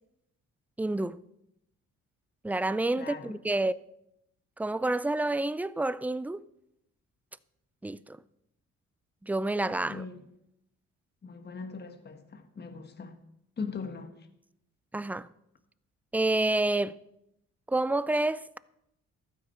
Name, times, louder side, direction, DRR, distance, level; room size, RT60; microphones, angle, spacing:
voice 1, 0.8-1.2 2.4-3.7 4.6-6.4 7.8-8.2 9.2-10.0 14.9-15.3 16.1-16.9 17.7-18.6, right 2 dB, 5° right, 0.4 m, -28 dB
voice 2, 3.0-3.4 9.7-10.3 11.2-13.2 13.6-14.3, left 5 dB, 35° left, 1.4 m, -40 dB
15.0 x 12.5 x 4.4 m
cardioid pair, 90°, 30 cm